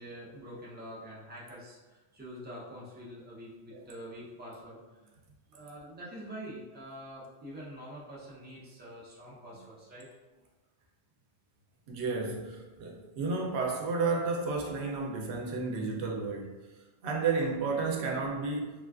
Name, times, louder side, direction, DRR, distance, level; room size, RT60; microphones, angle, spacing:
voice 1, 0.0-5.1 5.5-10.1, equal, 10° right, -6 dB, 0.5 m, -46 dB
voice 2, 11.9-16.5 17.0-18.7, right 4 dB, 90° right, 0 dB, 0.9 m, -32 dB
3.7 x 2.3 x 2.3 m, 1.2 s
omnidirectional pair, 1.1 m